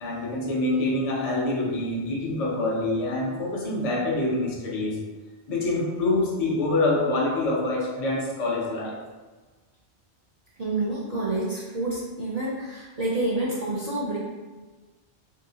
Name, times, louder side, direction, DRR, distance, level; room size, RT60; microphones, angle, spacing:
voice 1, 0.0-5.0 5.5-9.0, left 2 dB, 45° left, -2 dB, 0.5 m, -26 dB
voice 2, 10.6-14.2, right 2 dB, 50° right, -7 dB, 0.5 m, -28 dB
2.7 x 2.7 x 2.7 m, 1.3 s
omnidirectional pair, 1.2 m